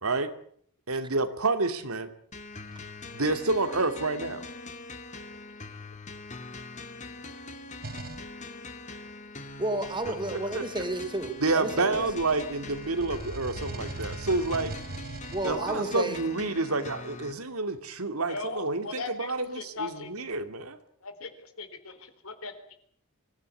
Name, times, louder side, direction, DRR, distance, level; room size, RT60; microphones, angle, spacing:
voice 1, 0.0-0.3 0.9-2.1 3.1-4.4 10.1-10.2 10.5-10.6 11.4-14.7 15.4-20.8, right 3 dB, 85° right, 8 dB, 2.6 m, -29 dB
sound 1, 2.3-17.3, left 3 dB, 35° left, 2.4 m, -43 dB
sound 2, 7.8-8.3 9.6-11.5 11.9-16.1, right 2 dB, 45° right, 1.0 m, -41 dB
voice 2, 9.6-12.0 15.3-16.2, right 2 dB, 20° right, 8 dB, 3.4 m, -31 dB
voice 3, 18.2-20.1 21.0-22.8, left 4 dB, 80° left, 10 dB, 3.9 m, -39 dB
25.0 x 15.5 x 9.7 m, 0.63 s
head